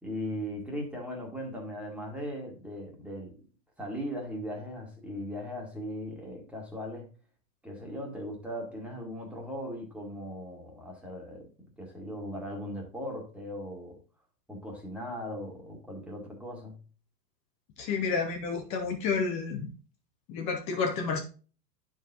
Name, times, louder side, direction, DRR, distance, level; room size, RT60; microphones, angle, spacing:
voice 1, 0.0-3.4 3.8-7.1 7.6-11.5 11.8-14.0 14.5-16.8, equal, ahead, -2 dB, 2.0 m, -38 dB
voice 2, 17.8-19.7 20.3-21.2, left 5 dB, 15° left, 3 dB, 0.4 m, -30 dB
10.0 x 4.7 x 2.8 m, 0.37 s
hypercardioid pair, 125°, 49 cm